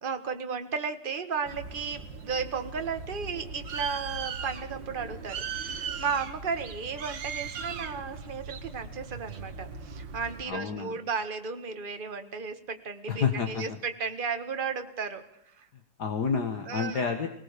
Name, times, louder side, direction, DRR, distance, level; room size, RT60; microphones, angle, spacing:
voice 1, 0.0-15.2 15.6-15.7 16.7-17.1, right 5 dB, 30° right, 7 dB, 1.6 m, -34 dB
Bird, 1.5-10.4, right 5 dB, 70° right, 2.1 m, -39 dB
voice 2, 10.5-10.9 13.1-13.6 16.0-17.3, left 6 dB, 55° left, 6 dB, 2.1 m, -29 dB
20.5 x 20.0 x 6.8 m, 0.75 s
omnidirectional pair, 2.1 m